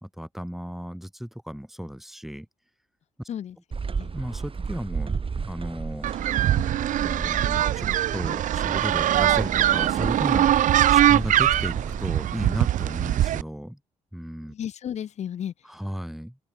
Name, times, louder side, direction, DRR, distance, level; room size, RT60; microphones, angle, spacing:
voice 1, 0.0-2.5 4.1-6.1 7.0-13.8 14.1-14.5 15.7-16.4, equal, ahead, 1.3 m, -34 dB
voice 2, 3.3-4.1 14.5-15.5, left 9 dB, 40° left, 0.7 m, -34 dB
sound 1, 3.7-12.0, right 5 dB, 30° right, 2.2 m, -33 dB
sound 2, 6.0-13.4, right 12 dB, 50° right, 0.6 m, -22 dB
open air
figure-of-eight pair, 40°, 17 cm